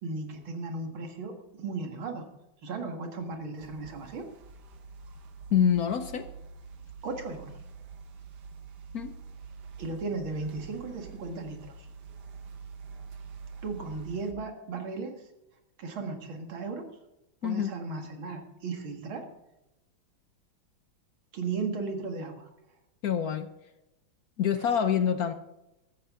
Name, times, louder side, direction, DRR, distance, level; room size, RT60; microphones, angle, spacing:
voice 1, 0.0-2.3 2.6-4.3 7.0-7.6 9.8-11.9 13.6-15.3 15.8-16.8 17.4-19.3 21.3-22.5, right 4 dB, 85° right, 4 dB, 2.7 m, -36 dB
sound 1, 3.6-14.3, right 5 dB, 60° right, 1.6 m, -46 dB
voice 2, 5.5-6.3 8.9-9.1 17.4-17.7 23.0-23.5 24.4-25.3, left 8 dB, 60° left, 9 dB, 1.1 m, -26 dB
14.0 x 13.5 x 3.7 m, 0.92 s
omnidirectional pair, 2.2 m